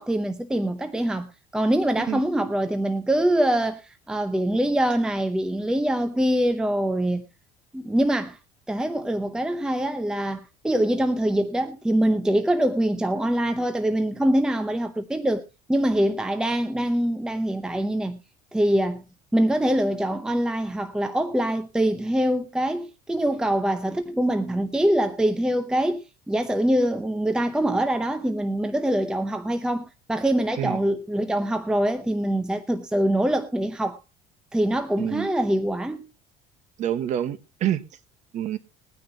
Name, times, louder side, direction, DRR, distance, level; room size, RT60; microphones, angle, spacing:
voice 1, 0.0-7.2 7.7-8.4 8.7-15.4 15.7-18.2 18.5-19.0 19.3-34.0 34.5-36.1, right 1 dB, 5° right, 0.7 m, -24 dB
voice 2, 35.0-35.3 36.8-37.8 38.3-38.6, right 11 dB, 50° right, 1.1 m, -27 dB
21.0 x 9.5 x 2.8 m
cardioid pair, 150°, 16 cm